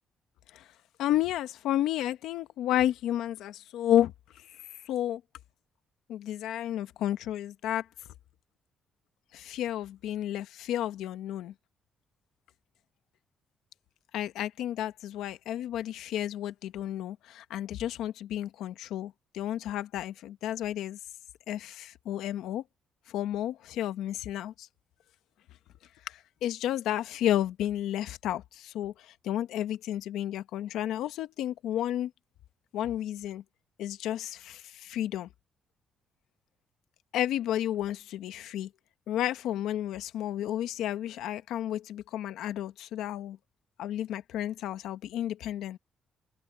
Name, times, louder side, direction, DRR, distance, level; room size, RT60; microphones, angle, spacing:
voice 1, 1.0-4.1 4.5-5.2 6.1-7.8 9.3-11.5 14.1-21.0 21.5-22.6 23.1-24.7 26.1-32.1 32.7-33.4 33.8-35.3 37.1-38.7 39.1-43.4 43.8-45.8, left 12 dB, 85° left, 1.1 m, -32 dB
cardioid pair, 90°, 0 cm